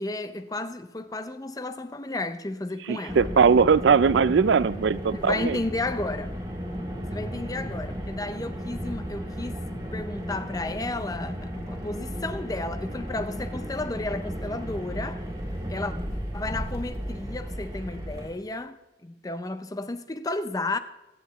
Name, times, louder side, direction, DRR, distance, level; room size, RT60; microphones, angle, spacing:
voice 1, 0.0-3.3 3.9-4.0 5.1-6.3 7.1-9.6 9.9-15.3 15.7-15.9 16.3-20.8, left 2 dB, 20° left, 0.5 m, -33 dB
voice 2, 2.9-5.6, right 5 dB, 65° right, 0.4 m, -20 dB
Car, 3.1-18.3, equal, 20° right, 2.1 m, -34 dB
22.0 x 9.5 x 3.1 m
head